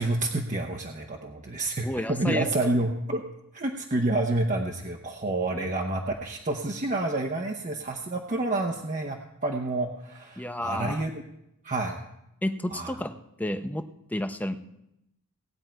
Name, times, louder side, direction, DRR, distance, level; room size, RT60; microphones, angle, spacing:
voice 1, 0.0-3.2 3.5-11.2 11.6-12.0 12.7-12.9, right 2 dB, 35° right, 2 dB, 0.8 m, -29 dB
voice 2, 1.8-2.5 5.5-5.7 10.4-11.0 12.4-13.1 13.4-13.8 14.1-14.5, left 1 dB, 5° left, 8 dB, 0.6 m, -31 dB
18.5 x 8.9 x 4.5 m, 0.84 s
head